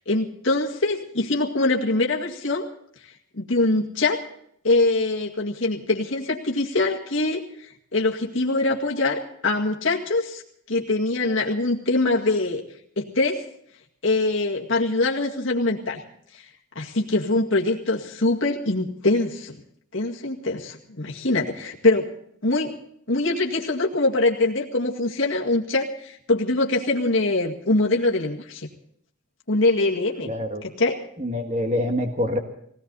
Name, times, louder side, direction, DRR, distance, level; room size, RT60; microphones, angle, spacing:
voice 1, 0.1-2.6 3.4-4.2 4.6-7.4 7.9-10.4 10.7-12.6 13.0-13.4 14.0-16.0 16.8-19.6 19.9-22.1 22.4-22.8 23.1-28.7 29.5-30.3 30.6-31.0, left 2 dB, 65° left, -1 dB, 2.1 m, -23 dB
voice 2, 30.2-30.6 31.2-32.4, left 1 dB, 35° right, 4 dB, 1.7 m, -25 dB
20.0 x 18.0 x 4.1 m, 0.69 s
head